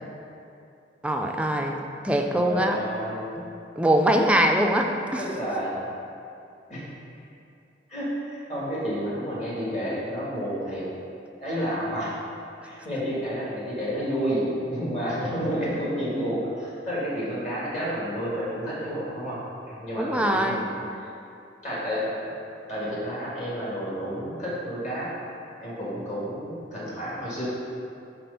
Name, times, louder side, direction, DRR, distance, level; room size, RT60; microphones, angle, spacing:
voice 1, 1.0-1.8 2.0-2.8 3.8-5.2 20.0-20.7, right 1 dB, 5° right, 2 dB, 0.3 m, -22 dB
voice 2, 2.3-3.3 5.2-5.9 6.7-6.9 7.9-10.9 11.4-12.2 12.6-21.0 21.6-22.3 22.7-25.1 25.6-27.5, equal, 40° left, -8 dB, 1.5 m, -30 dB
5.9 x 4.1 x 5.3 m, 2.6 s
head